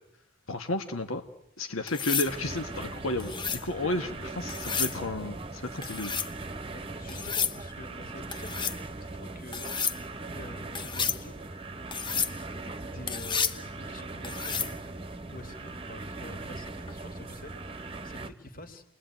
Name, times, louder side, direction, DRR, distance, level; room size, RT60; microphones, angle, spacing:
voice 1, 0.5-1.2 1.6-6.2, left 2 dB, 85° left, 6 dB, 1.7 m, -32 dB
sound 1, 1.9-2.3 3.2-3.6 4.5-5.0 5.8-6.3 7.1-7.6 8.3-8.8 9.5-10.0 10.7-11.2 11.9-12.3 13.1-13.6 14.2-14.7 16.7-16.9, left 6 dB, 20° left, 1.0 m, -31 dB
sound 2, 2.3-18.3, right 2 dB, 25° right, 1.1 m, -40 dB
voice 2, 6.7-8.8 9.1-9.7 10.2-11.4 12.3-18.8, left 1 dB, 40° left, 7 dB, 2.9 m, -47 dB
30.0 x 21.5 x 9.3 m, 0.81 s
head